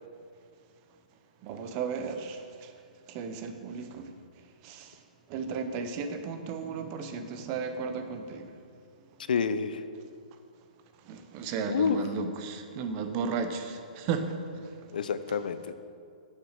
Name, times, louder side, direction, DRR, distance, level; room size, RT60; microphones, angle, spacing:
voice 1, 1.4-2.7 3.1-4.1 4.6-5.0 5.3-8.5 11.0-14.9, right 5 dB, 25° right, 7 dB, 0.7 m, -35 dB
voice 2, 9.3-9.8 11.7-12.0 14.9-15.7, left 6 dB, 80° left, 12 dB, 0.6 m, -28 dB
9.2 x 6.6 x 6.5 m, 2.3 s
hypercardioid pair, 170°, 5 cm